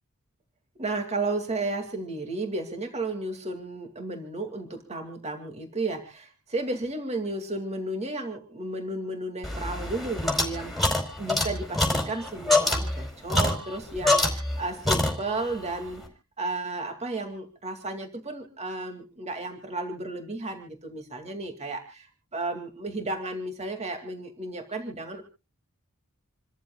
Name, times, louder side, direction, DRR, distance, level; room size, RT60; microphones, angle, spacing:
voice 1, 0.8-16.0 16.4-22.1 22.3-25.2, right 2 dB, 30° right, 5 dB, 2.5 m, -33 dB
sound 1, 9.4-14.6 14.9-15.5, left 2 dB, ahead, 4.4 m, -25 dB
28.5 x 14.0 x 2.4 m, 0.30 s
head